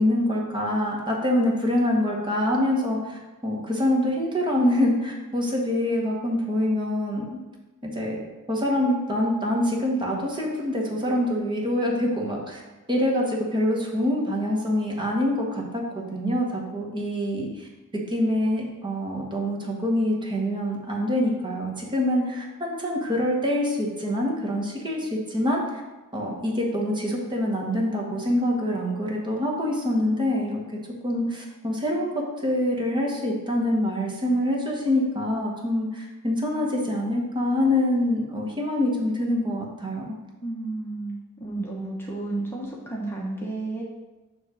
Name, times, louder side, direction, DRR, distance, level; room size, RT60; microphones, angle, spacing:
voice 1, 0.0-7.4 7.9-8.2 8.5-12.6 12.9-15.8 16.1-17.7 18.1-25.8 26.1-30.6 31.0-40.2, left 1 dB, 20° right, -1 dB, 1.2 m, -25 dB
voice 2, 40.4-43.8, right 2 dB, 10° left, -3 dB, 0.9 m, -32 dB
7.1 x 3.2 x 6.2 m, 1.1 s
head